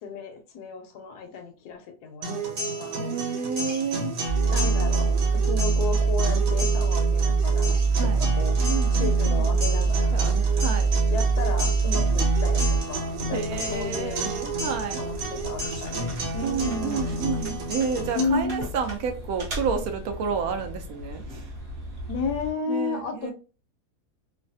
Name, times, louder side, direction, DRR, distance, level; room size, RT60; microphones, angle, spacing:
voice 1, 0.0-3.1 4.3-10.3 11.1-14.3 14.8-17.2 18.1-18.7 22.1-23.3, left 4 dB, 80° left, 1.1 m, -33 dB
sound 1, 2.2-18.2, right 1 dB, 85° right, 1.5 m, -31 dB
voice 2, 3.0-4.1 7.9-8.3 8.7-9.5 10.1-10.9 13.3-15.0 16.4-21.2 22.7-23.3, right 6 dB, 70° right, 1.0 m, -30 dB
sound 2, 4.3-12.8, right 5 dB, 50° left, 0.5 m, -23 dB
sound 3, 8.5-22.5, left 1 dB, 45° right, 1.0 m, -38 dB
3.1 x 2.2 x 2.6 m
omnidirectional pair, 1.7 m